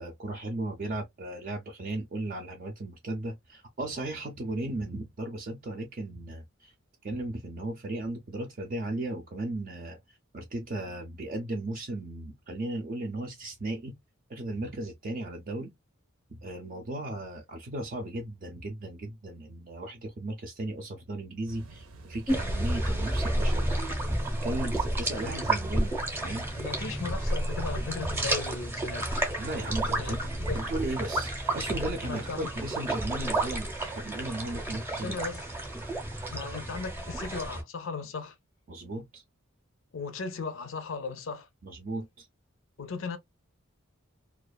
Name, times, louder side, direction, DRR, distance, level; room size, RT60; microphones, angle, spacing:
voice 1, 0.0-6.7 7.0-14.0 14.3-15.7 16.3-26.5 29.4-30.2 30.5-35.2 38.7-39.2 41.6-42.3, right 2 dB, 40° right, 0.4 m, -36 dB
sound 1, 21.5-30.6, right 2 dB, 90° right, 0.7 m, -48 dB
sound 2, 22.3-37.6, right 1 dB, 10° right, 0.7 m, -31 dB
voice 2, 26.6-29.1 30.0-30.2 30.5-30.7 32.1-32.5 35.0-35.5 36.3-38.4 39.9-41.5 42.8-43.2, left 4 dB, 70° left, 0.5 m, -36 dB
2.4 x 2.3 x 2.2 m
head